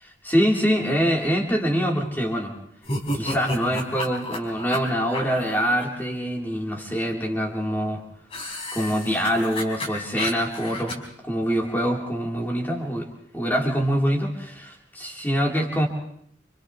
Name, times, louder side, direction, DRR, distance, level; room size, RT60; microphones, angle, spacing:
voice 1, 0.2-2.5 3.1-8.0 8.7-13.1 13.3-15.9, equal, 10° left, -2 dB, 3.8 m, -24 dB
sound 1, 2.8-5.8 8.3-10.9, left 1 dB, 30° left, 4.3 m, -32 dB
29.5 x 27.5 x 3.3 m, 0.69 s
head